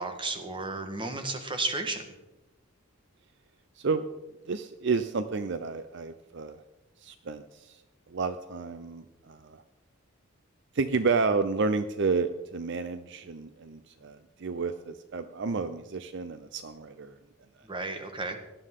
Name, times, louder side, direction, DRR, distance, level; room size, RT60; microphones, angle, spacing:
voice 1, 0.0-2.1 17.6-18.4, right 3 dB, 25° right, 6 dB, 1.4 m, -33 dB
voice 2, 4.5-6.6 7.0-7.8 8.1-9.6 10.7-17.2, right 4 dB, 60° right, 11 dB, 0.5 m, -31 dB
17.5 x 12.0 x 3.7 m, 1.0 s
head